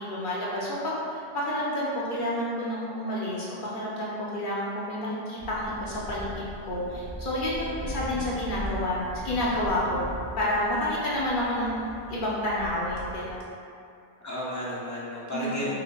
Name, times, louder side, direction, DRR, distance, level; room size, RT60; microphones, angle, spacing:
voice 1, 0.0-6.3 6.6-10.0 10.4-13.5 15.3-15.7, left 1 dB, 55° left, -7 dB, 0.7 m, -29 dB
sound 1, 5.4-13.4, equal, 40° right, 0.5 m, -39 dB
voice 2, 7.6-8.1 14.2-15.7, left 1 dB, 25° left, -8 dB, 0.3 m, -34 dB
5.5 x 2.0 x 2.2 m, 2.5 s
omnidirectional pair, 1.1 m